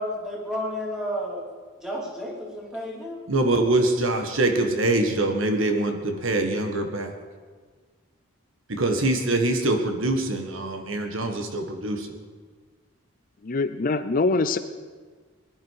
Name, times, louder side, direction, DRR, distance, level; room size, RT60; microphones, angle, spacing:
voice 1, 0.0-1.4 1.8-3.2, equal, 5° right, -3 dB, 3.1 m, -31 dB
voice 2, 3.3-7.1 8.7-12.1, right 2 dB, 65° right, 5 dB, 1.7 m, -24 dB
voice 3, 13.4-14.6, left 3 dB, 40° left, 11 dB, 0.5 m, -23 dB
21.5 x 11.0 x 4.9 m, 1.5 s
head